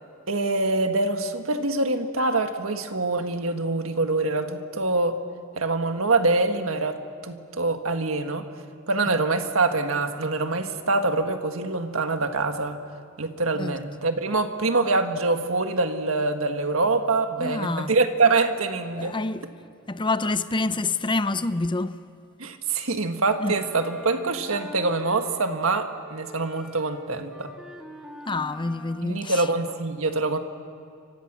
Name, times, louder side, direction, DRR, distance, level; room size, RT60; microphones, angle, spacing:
voice 1, 0.3-5.2 5.6-7.0 7.2-8.5 8.9-12.8 13.2-19.1 22.4-27.5 29.0-30.4, right 3 dB, 80° right, 1.7 m, -25 dB
voice 2, 17.4-17.9 18.9-19.5 19.9-22.0 23.4-23.6 28.3-29.5, left 3 dB, 25° left, 0.6 m, -27 dB
Wind instrument woodwind instrument, 23.5-25.7 26.0-29.1, equal, 5° right, 2.3 m, -44 dB
29.5 x 25.0 x 6.2 m
head